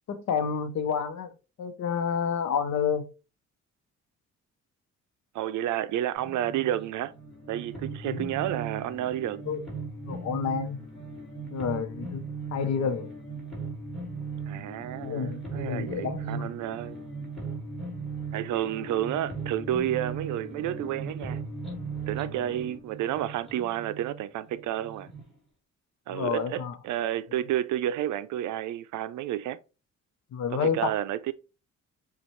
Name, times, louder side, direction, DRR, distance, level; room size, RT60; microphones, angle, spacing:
voice 1, 0.1-1.3 1.6-3.0 8.0-8.2 9.5-9.6 10.1-10.8 11.5-12.2 12.5-13.1 15.0-16.5 26.1-26.7 30.3-30.8, left 7 dB, 65° left, 0.9 m, -29 dB
voice 2, 5.3-7.1 7.5-9.4 14.5-17.0 18.3-21.4 22.1-25.1 26.1-29.6 30.5-31.3, right 12 dB, 75° right, 0.5 m, -30 dB
sound 1, 6.2-25.3, right 4 dB, ahead, 2.4 m, -38 dB
6.8 x 2.4 x 3.1 m
cardioid pair, 90°, 30 cm